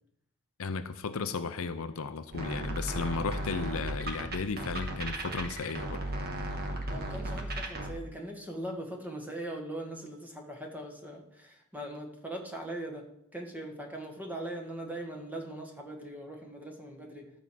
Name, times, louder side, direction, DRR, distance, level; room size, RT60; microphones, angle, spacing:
voice 1, 0.6-6.1, left 4 dB, 65° left, 10 dB, 0.6 m, -34 dB
sound 1, 2.3-7.9, right 1 dB, 45° right, 1.5 m, -35 dB
voice 2, 6.9-13.1 13.3-17.3, right 1 dB, 5° right, 1 dB, 1.8 m, -40 dB
12.5 x 4.8 x 7.5 m, 0.77 s
head